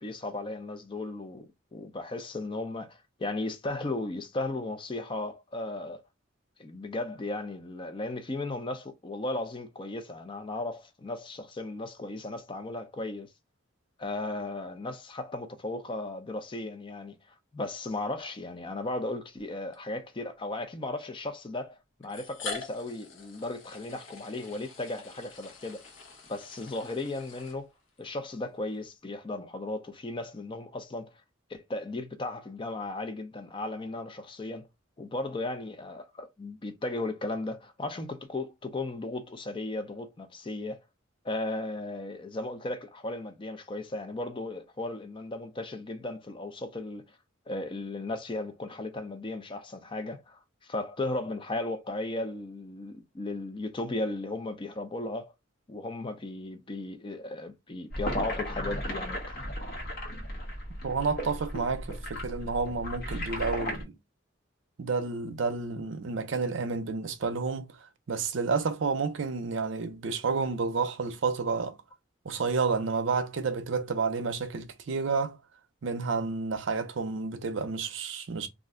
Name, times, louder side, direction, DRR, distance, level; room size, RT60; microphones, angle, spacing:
voice 1, 0.0-6.0 6.6-13.3 14.0-25.8 26.3-27.7 28.0-31.1 31.5-34.7 35.0-40.8 41.2-47.2 47.5-55.3 55.7-59.4, left 2 dB, 25° left, 0.4 m, -36 dB
sound 1, 18.6-18.7 19.7-19.8 21.0-21.1 22.0-28.0, left 4 dB, 70° left, 0.8 m, -44 dB
sound 2, 57.9-63.8, equal, 50° left, 1.1 m, -35 dB
voice 2, 60.8-63.9 64.8-67.8 68.1-71.8 72.2-75.4 75.8-78.5, right 4 dB, 65° right, 0.5 m, -30 dB
2.4 x 2.1 x 3.6 m
head